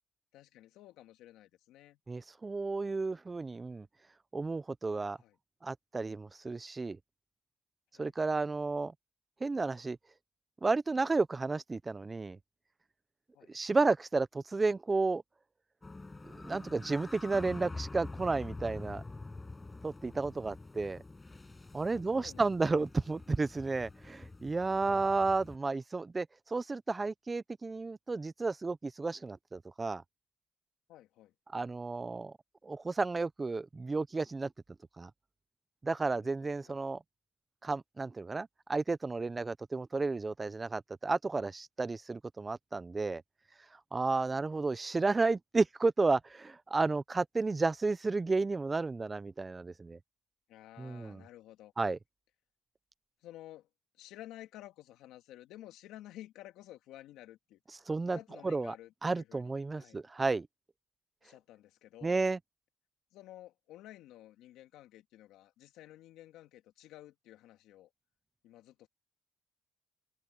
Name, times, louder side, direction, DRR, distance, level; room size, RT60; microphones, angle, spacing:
voice 1, 0.3-2.0 4.9-5.4 7.9-8.1 13.3-13.5 21.9-22.5 24.8-25.0 30.9-31.3 36.1-36.8 44.2-44.4 50.5-51.7 53.2-53.7 54.0-57.6 57.9-60.0 61.2-62.3 63.1-67.9 68.4-68.9, left 14 dB, 85° left, 2.3 m, -53 dB
voice 2, 2.1-3.9 4.3-5.2 5.6-7.0 8.0-8.9 9.4-10.0 10.6-12.4 13.5-15.2 16.2-19.0 19.8-21.0 21.7-30.0 31.5-32.3 32.6-34.5 35.0-35.1 35.8-37.0 37.6-43.2 43.9-50.0 50.8-51.2 51.8-52.0 57.9-58.2 58.4-58.7 59.0-60.5 62.0-62.4, right 3 dB, 25° right, 0.9 m, -32 dB
sound 1, 15.8-25.6, left 3 dB, 20° left, 6.8 m, -46 dB
supercardioid pair, 75°, 0 cm